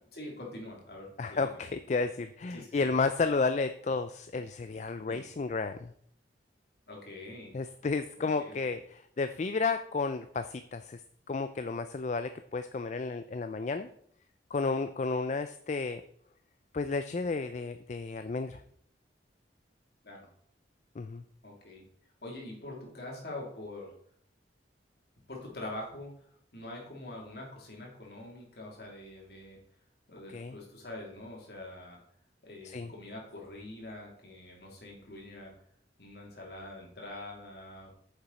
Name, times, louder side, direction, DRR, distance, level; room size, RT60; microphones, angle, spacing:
voice 1, 0.1-1.7 2.5-2.8 5.1-5.2 6.9-7.5 8.4-8.8 20.0-20.3 21.4-21.8 22.2-23.9 25.3-26.1 26.5-29.6 30.1-32.0 32.4-35.5 36.0-37.9, left 1 dB, 60° left, -2 dB, 3.0 m, -44 dB
voice 2, 1.2-5.9 7.5-11.0 11.3-13.9 14.5-16.0 16.7-18.6 21.0-21.2 30.3-30.6 32.6-32.9, left 4 dB, 40° left, 10 dB, 0.4 m, -32 dB
9.0 x 6.9 x 4.1 m, 0.64 s
head